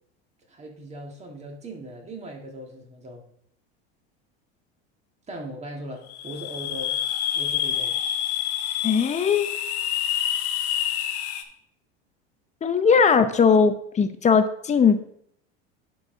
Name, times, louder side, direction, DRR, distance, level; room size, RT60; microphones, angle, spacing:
voice 1, 0.5-3.2 5.3-7.0 7.3-8.0, right 1 dB, 20° right, 1 dB, 1.9 m, -39 dB
sound 1, 6.1-11.4, left 10 dB, 80° left, 1.0 m, -27 dB
voice 2, 8.8-9.5 12.6-15.0, left 6 dB, 20° left, 10 dB, 0.7 m, -19 dB
10.5 x 4.7 x 3.8 m, 0.69 s
supercardioid pair, 110°, 32 cm